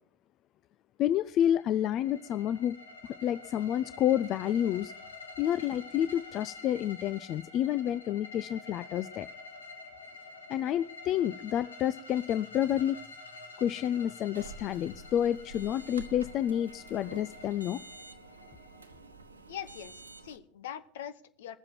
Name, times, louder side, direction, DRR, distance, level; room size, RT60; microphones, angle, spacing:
voice 1, 1.0-2.8 3.0-4.9 5.4-9.3 10.5-13.0 13.6-17.8, left 11 dB, 45° left, 15 dB, 0.5 m, -29 dB
sound 1, 1.3-19.2, left 3 dB, 85° left, 1.9 m, -48 dB
sound 2, 14.3-20.4, right 3 dB, 90° right, 1.0 m, -49 dB
voice 2, 19.5-21.6, left 10 dB, 70° left, 13 dB, 1.0 m, -42 dB
20.5 x 7.7 x 4.5 m, 0.63 s
hypercardioid pair, 85°, 0 cm